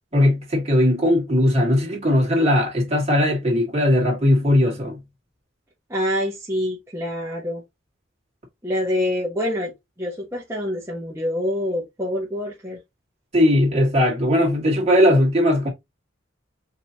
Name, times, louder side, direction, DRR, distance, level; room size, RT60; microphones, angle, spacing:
voice 1, 0.1-5.0 13.3-15.7, left 1 dB, 35° right, 1.8 m, -19 dB
voice 2, 5.9-7.6 8.6-12.8, left 1 dB, 15° right, 1.0 m, -26 dB
5.2 x 2.9 x 2.8 m
head